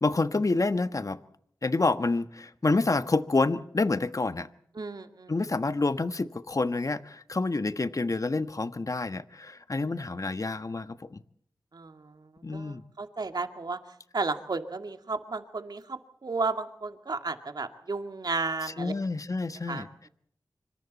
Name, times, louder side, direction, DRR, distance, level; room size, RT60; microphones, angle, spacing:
voice 1, 0.0-1.2 1.6-4.5 5.3-11.2 12.4-12.8 18.6-19.9, left 3 dB, 50° left, 11 dB, 1.4 m, -28 dB
voice 2, 4.8-5.3 11.7-12.1 12.5-13.8 14.1-18.9 19.7-19.8, right 3 dB, 65° right, 7 dB, 2.3 m, -33 dB
25.5 x 25.5 x 4.2 m, 0.67 s
cardioid pair, 40°, 7 cm